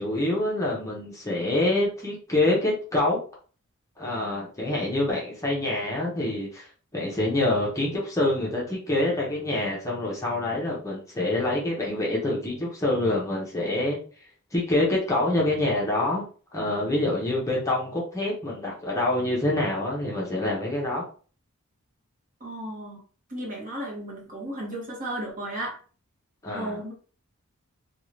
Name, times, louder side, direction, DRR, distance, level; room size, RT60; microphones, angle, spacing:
voice 1, 0.0-3.2 4.0-6.7 6.9-14.0 14.5-16.2 16.5-21.0 26.4-26.8, left 2 dB, 15° left, -4 dB, 0.7 m, -26 dB
voice 2, 22.4-23.0 23.3-25.8 26.5-26.9, right 1 dB, 35° right, -2 dB, 1.0 m, -34 dB
2.7 x 2.3 x 3.1 m, 0.39 s
head